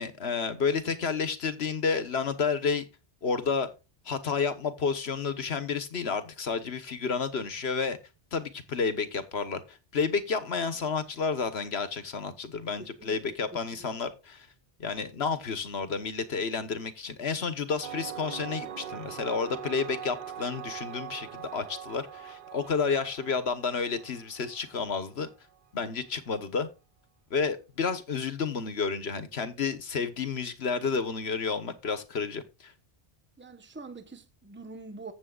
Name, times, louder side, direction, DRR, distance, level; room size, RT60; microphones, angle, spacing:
voice 1, 0.0-2.8 3.2-3.7 4.0-8.0 8.3-14.5 14.8-25.3 25.7-26.7 27.3-32.7, left 5 dB, 70° left, 1.5 m, -31 dB
voice 2, 12.8-13.2 13.5-13.9 33.4-35.1, right 3 dB, 10° right, 1.0 m, -45 dB
sound 1, 17.8-25.3, right 9 dB, 60° right, 0.7 m, -42 dB
15.0 x 7.5 x 2.4 m
omnidirectional pair, 1.1 m